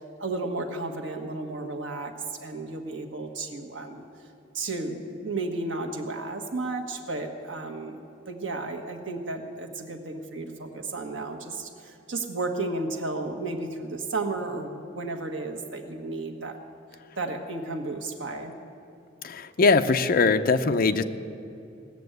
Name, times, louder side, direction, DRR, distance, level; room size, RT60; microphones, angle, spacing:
voice 1, 0.2-4.0 4.5-16.6 17.2-18.5, right 2 dB, 70° right, 4 dB, 1.3 m, -33 dB
voice 2, 19.2-21.0, left 4 dB, 50° left, 8 dB, 0.6 m, -21 dB
18.0 x 7.0 x 8.0 m, 2.7 s
head